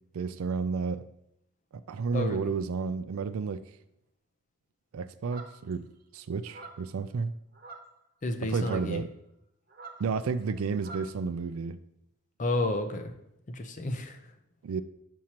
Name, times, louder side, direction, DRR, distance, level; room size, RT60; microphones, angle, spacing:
voice 1, 0.1-1.1 1.9-3.6 4.9-5.9 6.1-7.3 8.5-9.1 10.0-11.8 14.6-14.8, right 5 dB, 90° right, 12 dB, 0.4 m, -31 dB
voice 2, 2.1-2.5 8.2-9.0 12.4-13.1 13.5-14.3, left 2 dB, 35° left, 7 dB, 0.6 m, -31 dB
sound 1, 5.3-5.7 6.4-6.9 7.5-8.0 8.6-8.9 9.7-11.1, right 3 dB, 45° right, 0.7 m, -47 dB
7.3 x 6.3 x 2.9 m, 0.80 s
head